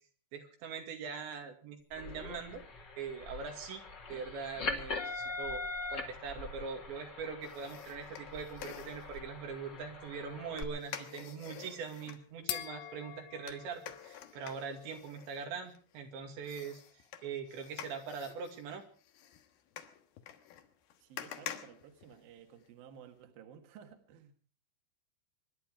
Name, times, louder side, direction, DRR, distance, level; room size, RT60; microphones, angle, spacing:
voice 1, 0.3-2.6 3.0-3.8 4.1-5.6 5.9-18.8, right 5 dB, 85° right, 4.8 m, -42 dB
sound 1, 1.9-10.6, left 3 dB, 35° left, 2.1 m, -42 dB
sound 2, 7.4-9.2 10.6-12.2 13.5-16.0 16.4-22.7 23.0-23.1, left 10 dB, 65° left, 2.9 m, -48 dB
sound 3, 10.3-15.1, left 13 dB, 85° left, 3.3 m, -46 dB
voice 2, 21.0-24.3, right 8 dB, 60° right, 3.2 m, -55 dB
25.5 x 11.5 x 4.9 m
omnidirectional pair, 5.0 m